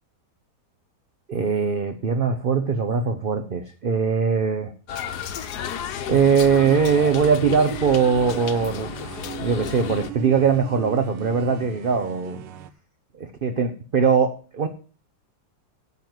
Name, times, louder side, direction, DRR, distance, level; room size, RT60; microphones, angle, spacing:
voice 1, 1.3-4.7 6.1-12.4 13.2-14.7, right 6 dB, 40° right, 7 dB, 0.8 m, -21 dB
sound 1, 4.9-10.1, left 8 dB, 65° left, 1.4 m, -33 dB
sound 2, 6.2-12.7, right 13 dB, 80° right, 1.5 m, -38 dB
9.6 x 7.1 x 7.7 m, 0.39 s
omnidirectional pair, 2.0 m